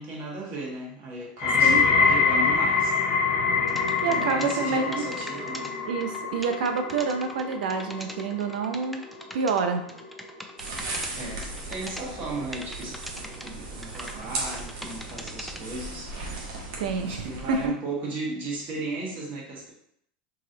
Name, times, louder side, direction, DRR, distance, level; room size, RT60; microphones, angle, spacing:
voice 1, 0.0-3.0 4.0-5.8 11.2-16.1 17.0-19.7, right 2 dB, 40° right, -3 dB, 1.4 m, -35 dB
sound 1, 1.4-12.5 12.8-13.4 14.1-14.2, left 5 dB, 75° left, 0.7 m, -26 dB
sound 2, 3.7-4.6 4.9-5.7 6.0-6.2 6.4-9.6 9.9-11.1 11.4-12.0 12.5-13.5 13.8-15.6, equal, ahead, 0.3 m, -41 dB
voice 2, 4.0-5.0 5.9-9.0 9.3-9.8 16.8-17.7, right 5 dB, 85° right, 6 dB, 0.5 m, -27 dB
sound 3, 10.6-17.7, right 2 dB, 70° right, 1.0 m, -37 dB
3.0 x 2.8 x 3.8 m, 0.70 s
supercardioid pair, 115°, 5 cm